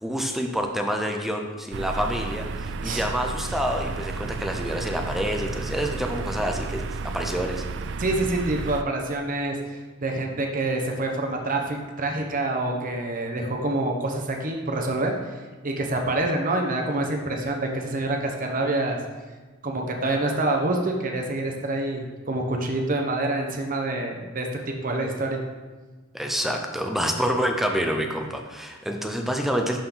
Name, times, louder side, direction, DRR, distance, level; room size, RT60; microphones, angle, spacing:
voice 1, 0.0-7.6 26.1-29.8, equal, ahead, 3 dB, 0.6 m, -27 dB
sound 1, 1.7-8.8, right 3 dB, 60° right, 0.4 m, -32 dB
voice 2, 8.0-19.0 19.6-25.4, right 2 dB, 40° right, 2 dB, 1.0 m, -27 dB
11.5 x 4.4 x 3.9 m, 1.3 s
head